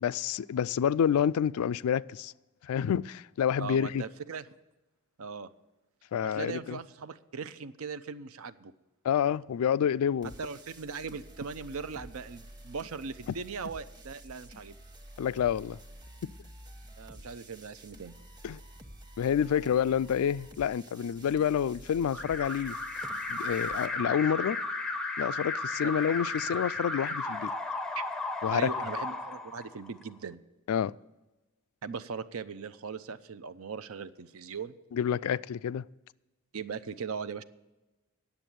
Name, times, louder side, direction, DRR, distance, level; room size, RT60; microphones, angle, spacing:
voice 1, 0.0-2.3 2.6-4.0 6.1-6.8 9.0-10.3 15.2-15.8 18.4-18.6 19.2-22.8 23.3-24.6 25.2-27.5 28.4-28.7 30.7-30.9 34.9-35.8, left 8 dB, 75° left, 0.3 m, -28 dB
voice 2, 3.6-4.5 5.2-5.5 6.2-8.7 10.4-14.8 17.0-18.1 25.8-25.9 28.0-28.1 28.5-30.4 31.8-34.8 36.5-37.4, right 5 dB, 70° right, 0.6 m, -39 dB
sound 1, 10.2-23.9, right 1 dB, 20° right, 1.1 m, -50 dB
Alarm, 22.1-30.0, left 2 dB, 5° left, 0.5 m, -34 dB
10.0 x 7.1 x 9.1 m
head